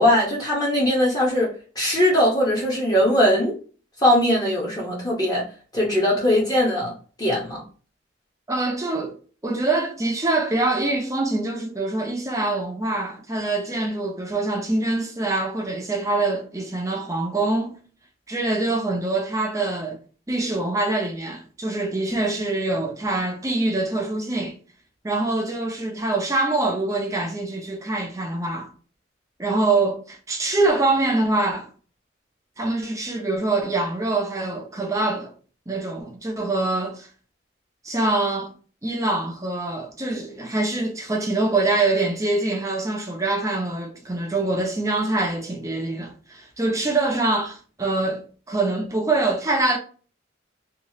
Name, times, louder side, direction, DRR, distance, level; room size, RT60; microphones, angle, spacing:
voice 1, 0.0-3.5 4.0-5.5 5.7-6.9 7.2-7.6, left 1 dB, 20° left, 0.8 m, -20 dB
voice 2, 8.5-9.2 9.4-17.8 18.3-20.0 20.3-24.6 25.0-28.7 29.4-31.7 32.6-35.3 35.7-37.1 37.8-38.5 38.8-49.8, right 2 dB, 15° right, 0.4 m, -24 dB
3.0 x 2.3 x 2.7 m
head